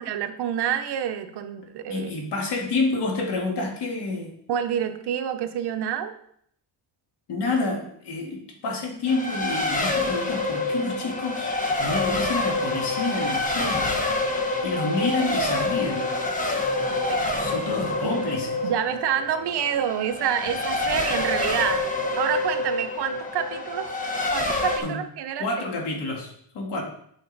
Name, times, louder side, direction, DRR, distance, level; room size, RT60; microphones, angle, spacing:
voice 1, 0.1-2.1 4.5-6.1 16.9-17.4 17.7-17.8 18.0-18.1 18.6-21.8 22.2-23.9 24.3-25.5, right 9 dB, 65° right, 8 dB, 0.8 m, -28 dB
voice 2, 1.9-4.3 7.3-11.5 11.8-13.9 14.6-16.1 17.3-18.5 24.8-25.0 25.4-26.8, left 3 dB, 65° left, 1 dB, 1.9 m, -28 dB
Race car auto racing, 9.1-24.8, left 2 dB, 20° left, 1.0 m, -27 dB
8.2 x 5.2 x 4.0 m, 0.67 s
cardioid pair, 150°, 44 cm